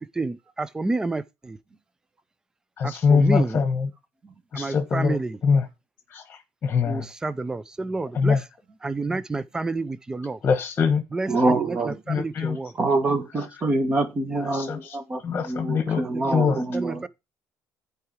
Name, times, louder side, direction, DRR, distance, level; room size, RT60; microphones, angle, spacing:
voice 1, 0.0-1.6 2.8-3.6 4.5-5.4 6.8-8.4 8.8-10.4 11.1-12.7 16.1-17.1, right 3 dB, 10° right, 0.5 m, -29 dB
voice 2, 2.8-3.9 4.5-5.2 5.4-5.6 6.1-7.1 8.1-8.4 10.4-11.0 12.1-12.6 14.5-14.8 15.2-16.0 16.3-16.6, left 5 dB, 35° left, 1.2 m, -23 dB
voice 3, 11.3-12.0 12.7-17.0, right 2 dB, 30° right, 1.6 m, -25 dB
11.0 x 4.9 x 4.8 m
cardioid pair, 140°, 5 cm